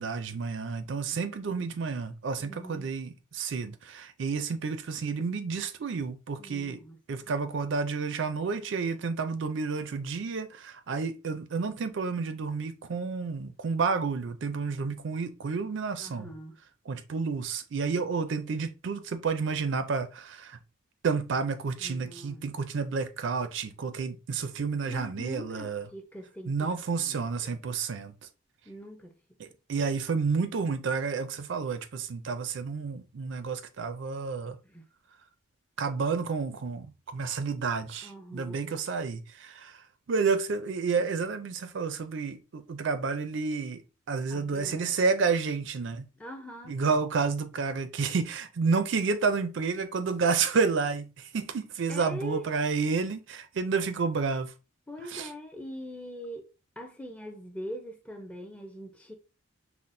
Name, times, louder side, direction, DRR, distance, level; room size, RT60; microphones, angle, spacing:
voice 1, 0.0-6.8 7.1-16.3 16.9-20.6 21.0-25.9 26.5-28.1 29.4-34.6 35.8-39.8 40.1-43.8 44.1-46.1 46.7-54.5 55.1-55.3, right 5 dB, 60° right, 0.4 m, -30 dB
voice 2, 2.4-2.9 6.4-7.0 16.0-16.6 21.8-22.4 24.8-27.5 28.7-29.2 34.6-34.8 38.0-38.6 44.3-45.0 46.2-46.8 51.9-52.5 54.9-56.5 56.8-59.1, equal, 5° left, 0.5 m, -43 dB
5.7 x 2.0 x 2.6 m
head